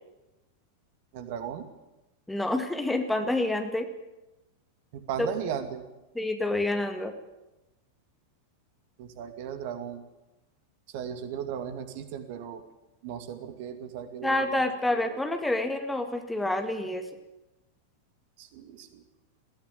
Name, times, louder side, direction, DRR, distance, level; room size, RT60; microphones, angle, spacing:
voice 1, 1.1-1.7 4.9-5.9 9.0-10.0 10.9-12.6 13.0-14.5 14.9-15.2 18.4-19.0, right 8 dB, 50° right, 8 dB, 2.3 m, -36 dB
voice 2, 2.3-3.9 5.2-5.3 6.2-7.1 14.2-17.0, left 2 dB, 5° left, 5 dB, 2.1 m, -28 dB
21.5 x 16.0 x 9.2 m, 1.0 s
figure-of-eight pair, 90°, 0 cm